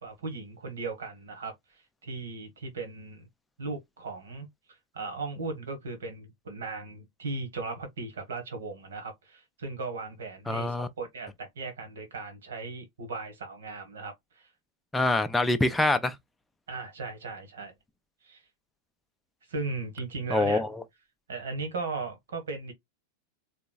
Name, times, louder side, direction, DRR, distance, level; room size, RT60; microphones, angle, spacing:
voice 1, 0.0-3.3 3.6-14.5 16.7-17.7 18.2-18.4 19.5-20.6 21.3-22.7, right 3 dB, 65° right, 1.6 m, -37 dB
voice 2, 10.5-10.9 14.9-16.1 20.3-20.8, left 2 dB, 5° left, 0.5 m, -25 dB
3.8 x 3.4 x 2.3 m
figure-of-eight pair, 90°, 0 cm